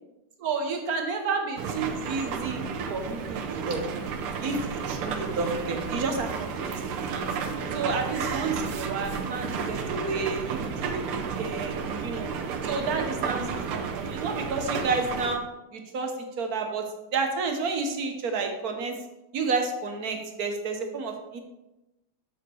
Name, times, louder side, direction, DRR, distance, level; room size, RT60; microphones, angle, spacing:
voice 1, 0.4-2.6 2.9-3.8 4.4-6.3 6.6-6.7 7.1-7.3 7.7-12.3 12.6-15.4 15.7-19.0 19.3-21.4, right 4 dB, 55° right, 4 dB, 1.2 m, -30 dB
sound 1, 1.6-15.4, right 5 dB, 80° right, 1.7 m, -32 dB
7.1 x 6.0 x 4.6 m, 0.97 s
omnidirectional pair, 2.4 m